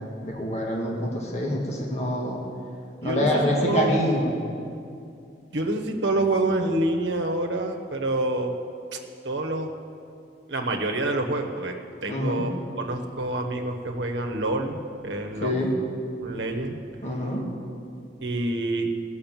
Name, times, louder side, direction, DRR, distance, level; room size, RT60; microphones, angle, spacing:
voice 1, 0.2-2.4 3.0-4.3 12.1-12.4 15.4-15.7 17.0-17.4, left 1 dB, 40° left, -2 dB, 1.7 m, -25 dB
voice 2, 3.0-4.0 5.5-8.6 8.9-9.0 9.2-9.7 10.5-11.8 12.0-12.5 12.8-15.6 16.2-16.8 18.2-18.9, right 2 dB, 85° right, 3 dB, 1.1 m, -27 dB
16.0 x 6.4 x 7.4 m, 2.5 s
head